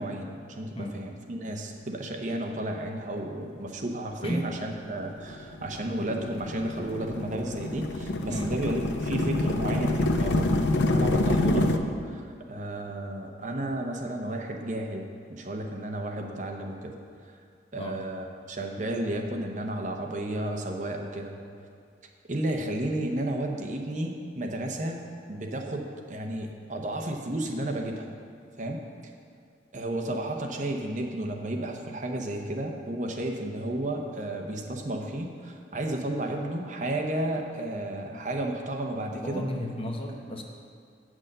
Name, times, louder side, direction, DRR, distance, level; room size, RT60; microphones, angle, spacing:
voice 1, 0.0-17.0 17.7-21.4 22.3-25.0 25.3-28.1 28.6-28.8 29.7-39.4, right 1 dB, 40° right, 2 dB, 0.8 m, -32 dB
sound 1, 4.9-11.8, left 2 dB, 75° left, 0.6 m, -27 dB
voice 2, 39.2-40.4, equal, 30° left, 1 dB, 0.9 m, -33 dB
8.8 x 6.3 x 6.6 m, 2.2 s
head